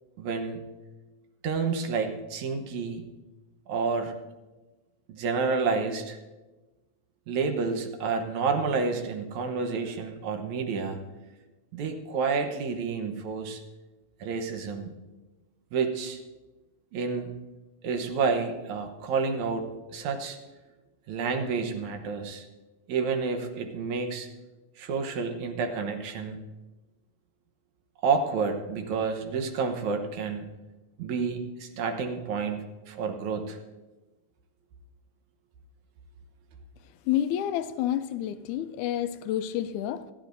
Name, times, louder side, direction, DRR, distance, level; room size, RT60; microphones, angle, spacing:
voice 1, 0.2-0.6 1.4-3.0 3.7-4.1 5.1-6.2 7.3-11.0 11.7-13.6 14.2-14.9 15.7-16.2 16.9-17.4 17.8-20.4 21.1-22.5 22.9-24.3 24.8-26.4 28.0-30.5 31.0-33.6, right 5 dB, 75° right, 2.3 m, -29 dB
voice 2, 37.1-40.1, left 11 dB, 85° left, 2.0 m, -29 dB
27.0 x 10.5 x 2.6 m
omnidirectional pair, 3.5 m